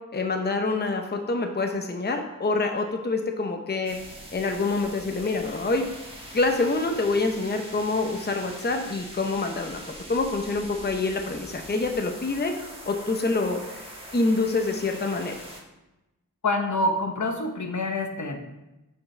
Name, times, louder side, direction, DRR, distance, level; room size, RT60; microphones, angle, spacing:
voice 1, 0.1-4.0 4.3-5.9 6.3-9.8 10.1-13.8 14.1-15.3, left 3 dB, 30° left, 4 dB, 0.8 m, -26 dB
sound 1, 3.8-15.6, right 1 dB, 15° right, 1.6 m, -43 dB
voice 2, 16.4-18.4, left 2 dB, 60° left, 4 dB, 1.1 m, -26 dB
12.0 x 4.8 x 3.3 m, 0.99 s
wide cardioid pair, 70°, 33 cm